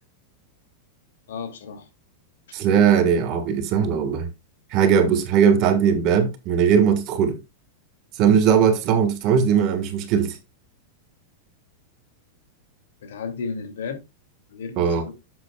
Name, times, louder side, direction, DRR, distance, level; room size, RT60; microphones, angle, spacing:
voice 1, 1.3-1.9 13.0-14.0 14.5-15.1, left 5 dB, 85° left, 2.3 m, -33 dB
voice 2, 2.5-4.3 4.7-7.3 8.2-10.4 14.8-15.0, right 7 dB, 35° right, 1.4 m, -19 dB
11.0 x 7.7 x 2.3 m
supercardioid pair, 170°, 0 cm